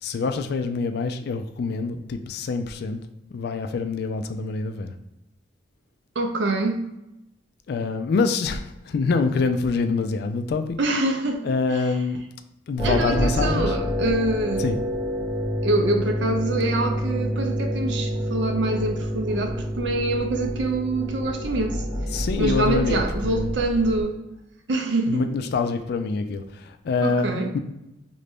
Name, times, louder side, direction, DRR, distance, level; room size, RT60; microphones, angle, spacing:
voice 1, 0.0-3.0 3.3-4.9 7.7-10.7 11.4-12.2 12.7-13.8 14.6-14.8 22.1-23.5 25.1-27.6, left 4 dB, 60° left, 7 dB, 0.3 m, -25 dB
voice 2, 6.2-6.8 10.8-11.5 12.8-14.8 15.6-21.8 22.1-24.2 24.7-25.2 27.0-27.5, right 2 dB, 70° right, 5 dB, 0.5 m, -25 dB
sound 1, 12.8-24.0, equal, 30° right, 1.3 m, -28 dB
3.2 x 2.6 x 3.4 m, 0.90 s
head